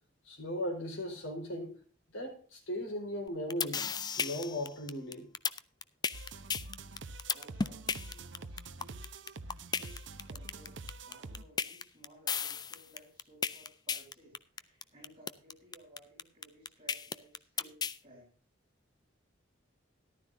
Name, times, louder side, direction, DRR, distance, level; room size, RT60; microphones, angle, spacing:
voice 1, 0.2-1.7 2.1-3.8 4.2-5.3, left 1 dB, 90° left, 4.4 m, -37 dB
sound 1, 3.3-18.0, left 6 dB, 20° left, 0.4 m, -34 dB
sound 2, 6.1-11.4, right 3 dB, 65° right, 0.8 m, -46 dB
voice 2, 7.3-9.2 9.7-10.0 10.2-18.4, equal, 25° right, 7.0 m, -59 dB
14.0 x 12.0 x 2.6 m
head